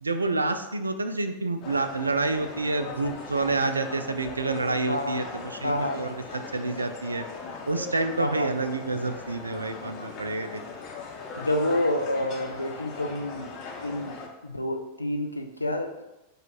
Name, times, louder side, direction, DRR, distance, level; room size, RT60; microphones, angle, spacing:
voice 1, 0.0-7.3 7.7-10.6, right 3 dB, 80° right, 9 dB, 0.3 m, -28 dB
sound 1, 1.6-14.3, left 4 dB, 35° left, 0.8 m, -39 dB
voice 2, 4.9-5.2 5.6-6.0 8.2-8.5 11.4-13.5 13.8-14.2 14.4-16.0, left 1 dB, 85° left, 5 dB, 0.4 m, -28 dB
4.8 x 2.4 x 4.4 m, 0.97 s
figure-of-eight pair, 90°, 0 cm